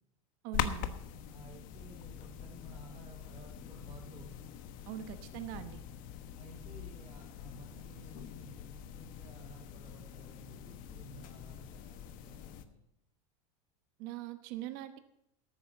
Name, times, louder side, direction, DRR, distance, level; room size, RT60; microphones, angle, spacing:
voice 1, 0.4-0.9 4.9-5.8 14.0-15.0, right 12 dB, 60° right, 11 dB, 1.1 m, -42 dB
sound 1, 0.5-12.6, left 9 dB, 55° left, 1.2 m, -43 dB
voice 2, 1.3-4.5 6.3-12.8, right 2 dB, 30° right, -4 dB, 4.3 m, -55 dB
13.0 x 8.8 x 7.1 m, 0.79 s
supercardioid pair, 110°, 17 cm